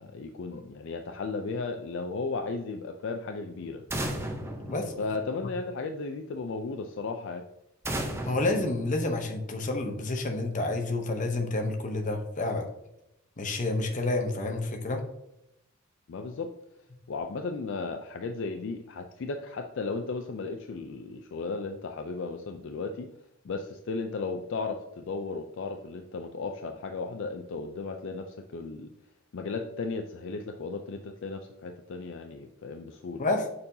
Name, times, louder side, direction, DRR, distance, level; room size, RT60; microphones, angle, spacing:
voice 1, 0.0-3.9 5.0-7.4 16.1-16.5 17.1-23.1 23.4-28.9 29.3-33.2, left 4 dB, 55° left, 5 dB, 0.4 m, -35 dB
sound 1, 3.9-5.7 7.8-9.6, right 1 dB, 10° right, 0.6 m, -35 dB
voice 2, 8.2-12.7 13.4-15.0 33.2-33.5, left 2 dB, 35° left, 4 dB, 0.8 m, -29 dB
6.7 x 5.4 x 2.7 m, 0.83 s
head